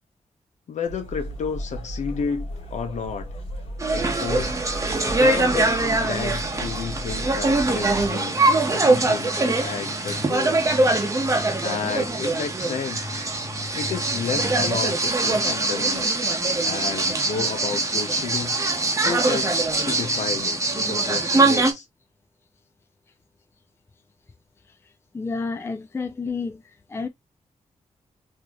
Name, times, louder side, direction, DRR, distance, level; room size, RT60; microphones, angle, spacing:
voice 1, 0.7-3.3 3.9-4.6 5.1-8.4 8.7-10.6 11.6-13.1 13.7-16.1 16.6-18.6 19.0-21.9, left 5 dB, 75° left, 0.8 m, -31 dB
sound 1, 0.9-8.1, equal, 55° left, 2.1 m, -35 dB
sound 2, 3.8-21.7, right 2 dB, 25° right, 0.9 m, -23 dB
sound 3, 7.5-14.9, left 2 dB, ahead, 2.2 m, -39 dB
voice 2, 25.1-26.6 26.9-27.1, left 4 dB, 20° left, 0.4 m, -29 dB
3.7 x 2.8 x 2.9 m
wide cardioid pair, 120°, 12 cm